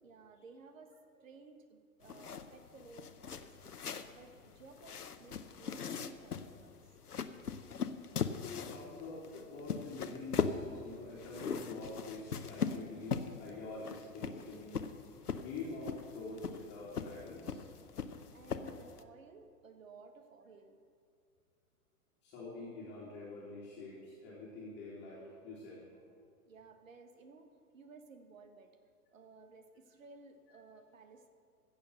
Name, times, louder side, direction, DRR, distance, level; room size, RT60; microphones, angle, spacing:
voice 1, 0.0-0.9 1.2-6.9 18.3-20.8 26.5-28.7 29.1-31.3, right 4 dB, 55° right, 7 dB, 1.4 m, -57 dB
sound 1, 2.0-19.0, left 6 dB, 75° left, 0.8 m, -40 dB
voice 2, 8.4-14.8 15.3-17.6 22.2-25.9, left 3 dB, 25° left, -6 dB, 2.7 m, -46 dB
15.5 x 7.1 x 6.5 m, 2.3 s
figure-of-eight pair, 110°, 46 cm